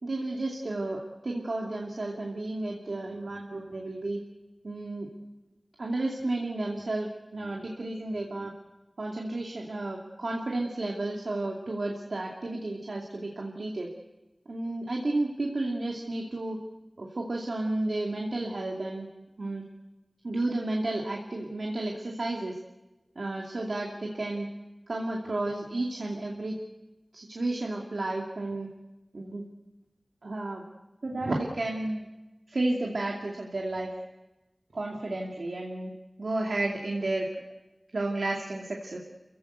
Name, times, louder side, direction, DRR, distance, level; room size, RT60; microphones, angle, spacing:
voice 1, 0.0-4.2 4.6-5.1 5.8-8.5 9.0-13.9 14.5-16.6 17.0-19.1 19.4-19.6 20.2-22.6 23.2-24.5 24.9-26.6 27.1-28.7 29.1-29.4 30.2-30.6 31.0-32.1 32.5-33.9 34.7-35.9 36.2-37.3 37.9-39.0, right 2 dB, 90° right, -1 dB, 2.5 m, -32 dB
28.5 x 16.0 x 8.1 m, 1.1 s
wide cardioid pair, 60°, 0 cm